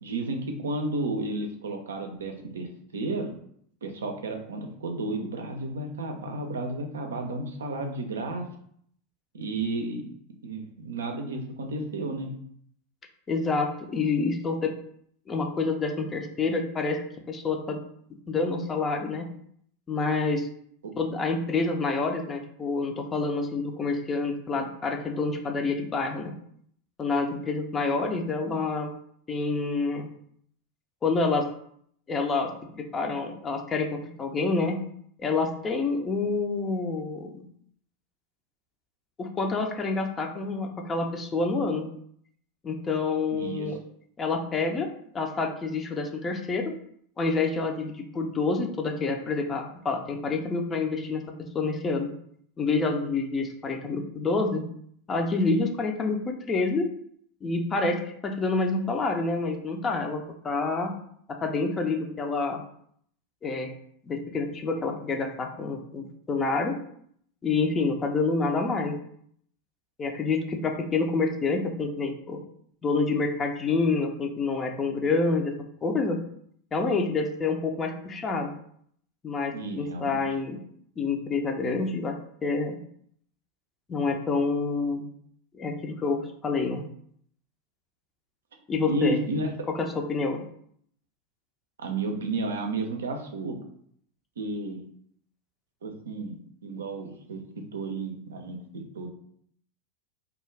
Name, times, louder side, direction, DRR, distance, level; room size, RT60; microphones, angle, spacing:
voice 1, 0.0-3.3 3.8-8.5 9.3-10.1 10.4-12.3 20.8-20.9 43.3-43.8 79.5-80.2 88.8-89.6 91.8-93.6 94.4-94.8 95.8-99.1, right 2 dB, 80° right, 4 dB, 0.5 m, -32 dB
voice 2, 13.3-14.7 15.3-17.8 18.3-19.3 19.9-20.5 21.0-26.3 27.0-28.9 29.3-30.1 31.0-31.5 32.1-34.8 35.2-37.5 39.2-41.9 42.6-43.8 44.2-44.9 45.1-46.7 47.2-51.2 51.5-52.1 52.6-54.6 55.1-56.9 57.4-60.9 61.3-62.6 63.4-63.7 64.1-66.8 67.4-68.9 70.0-72.4 72.8-75.5 75.8-76.2 76.7-78.5 79.2-80.6 81.0-82.8 83.9-85.0 85.5-86.8 88.7-89.2 89.8-90.4, left 3 dB, 25° left, 3 dB, 0.5 m, -28 dB
2.3 x 2.3 x 3.1 m, 0.65 s
hypercardioid pair, 90°, 0 cm